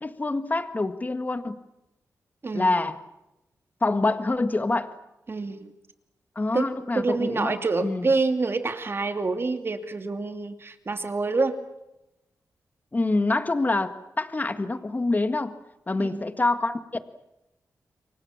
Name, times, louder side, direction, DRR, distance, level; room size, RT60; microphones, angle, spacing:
voice 1, 0.0-1.6 2.5-3.0 3.8-4.9 6.4-7.6 7.8-8.1 12.9-15.5 15.9-17.0, left 2 dB, 30° left, 10 dB, 1.8 m, -26 dB
voice 2, 2.4-2.7 5.3-5.7 6.5-11.6 16.0-16.3, right 3 dB, 40° right, 8 dB, 2.7 m, -27 dB
28.5 x 24.5 x 7.4 m, 0.91 s
cardioid pair, 85°, 6 cm